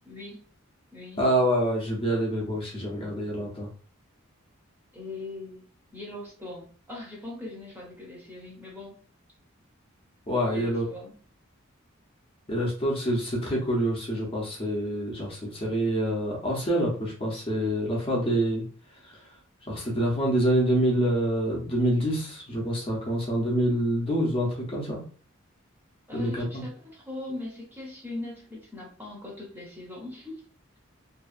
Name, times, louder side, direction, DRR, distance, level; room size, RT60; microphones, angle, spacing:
voice 1, 0.1-0.4 0.9-1.3 4.9-5.7 5.9-9.0 10.5-11.2 26.1-30.4, left 2 dB, 10° right, -4 dB, 0.7 m, -40 dB
voice 2, 1.2-3.7 10.3-10.9 12.5-18.6 19.7-25.0 26.1-26.6, right 1 dB, 25° left, -3 dB, 0.7 m, -26 dB
2.6 x 2.3 x 2.4 m, 0.41 s
head